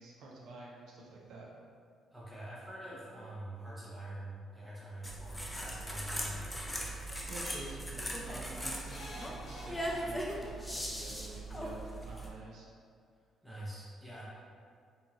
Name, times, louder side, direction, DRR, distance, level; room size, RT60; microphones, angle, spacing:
voice 1, 0.0-1.5 7.3-12.7, right 2 dB, 75° right, -3 dB, 0.4 m, -49 dB
voice 2, 2.1-6.9 13.4-14.3, right 1 dB, 10° right, -8 dB, 0.9 m, -45 dB
sound 1, 5.0-12.3, equal, 10° left, 0.4 m, -39 dB
sound 2, 7.4-7.7 8.8-10.5 11.7-11.8 12.1-12.2, left 1 dB, 65° left, 0.8 m, -47 dB
2.8 x 2.7 x 2.4 m, 2.2 s
cardioid pair, 90°, 0 cm